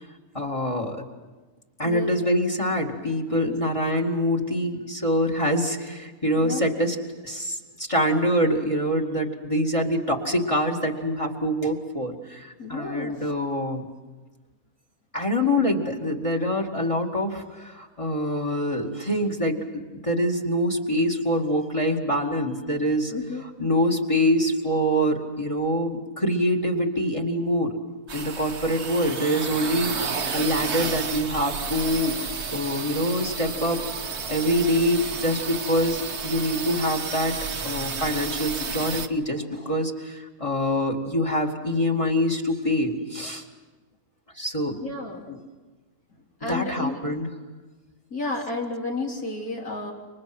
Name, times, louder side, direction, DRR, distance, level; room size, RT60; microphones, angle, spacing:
voice 1, 0.3-1.0 1.8-7.0 7.2-13.8 15.1-23.1 23.6-27.7 28.1-32.2 32.5-33.8 34.3-37.4 37.6-43.4 44.4-44.8 45.3-45.4 46.5-47.3, equal, 20° left, 3 dB, 2.3 m, -25 dB
voice 2, 12.6-13.1 23.1-23.4 44.8-45.3 46.4-47.0 48.1-49.9, left 3 dB, 65° left, -2 dB, 3.9 m, -31 dB
sound 1, 28.1-39.1, right 5 dB, 45° right, 1.5 m, -32 dB
30.0 x 25.5 x 6.2 m, 1.3 s
omnidirectional pair, 1.6 m